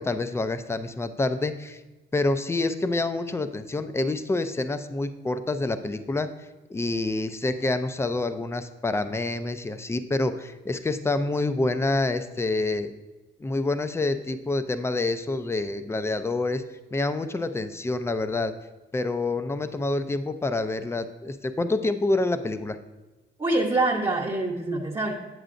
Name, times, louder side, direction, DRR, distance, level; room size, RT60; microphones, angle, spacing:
voice 1, 0.0-1.8 2.1-12.9 13.4-16.6 16.9-18.5 18.9-22.8, left 2 dB, 15° left, 10 dB, 0.4 m, -27 dB
voice 2, 23.4-25.1, right 2 dB, 20° right, -3 dB, 0.8 m, -25 dB
7.9 x 7.7 x 2.5 m, 1.1 s
cardioid pair, 90°, 20 cm